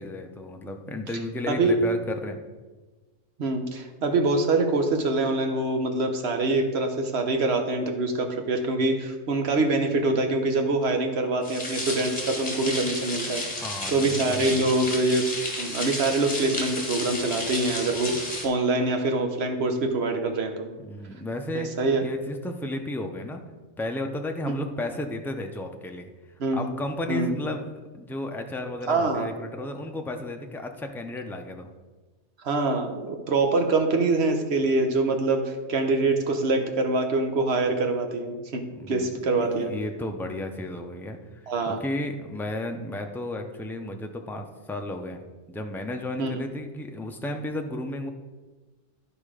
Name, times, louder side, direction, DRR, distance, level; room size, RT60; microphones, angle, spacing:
voice 1, 0.0-2.4 13.5-14.7 20.8-21.7 22.0-23.4 23.8-26.1 26.5-27.6 27.9-31.7 38.7-41.2 41.7-45.2 45.5-48.1, left 1 dB, 5° left, 3 dB, 0.3 m, -33 dB
voice 2, 3.4-13.4 13.9-15.2 15.6-18.1 18.4-20.7 21.5-22.0 24.5-24.6 26.4-26.7 27.1-27.3 28.9-29.3 32.4-38.6 38.9-39.7 41.5-41.8 46.2-46.3, right 2 dB, 55° right, 4 dB, 1.2 m, -24 dB
sound 1, 11.4-18.5, left 1 dB, 30° left, 1.6 m, -32 dB
11.0 x 5.0 x 5.0 m, 1.3 s
omnidirectional pair, 1.3 m